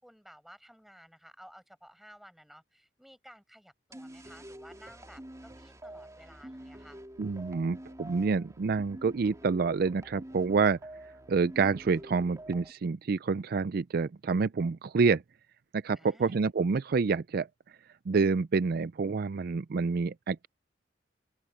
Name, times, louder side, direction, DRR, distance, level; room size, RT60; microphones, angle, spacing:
voice 1, 0.0-7.0 16.0-16.5, equal, ahead, 5.7 m, -55 dB
sound 1, 3.9-12.7, right 1 dB, 20° right, 3.0 m, -48 dB
voice 2, 7.2-10.8 11.3-15.2 15.7-17.5 18.1-20.5, right 4 dB, 55° right, 0.4 m, -28 dB
open air
head